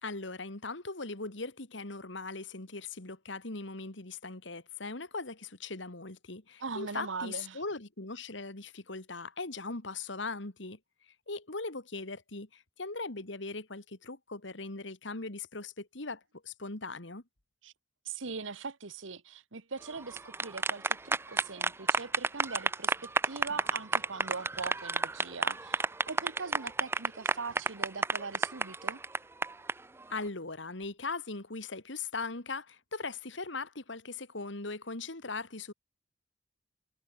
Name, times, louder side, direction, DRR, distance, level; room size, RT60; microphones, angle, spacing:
voice 1, 0.0-10.8 11.3-17.2 30.1-35.7, left 3 dB, 70° left, 2.3 m, -39 dB
voice 2, 6.6-7.6 17.6-17.7 18.0-29.0, right 4 dB, 80° right, 1.3 m, -41 dB
sound 1, 20.0-29.7, right 3 dB, 10° right, 0.4 m, -30 dB
head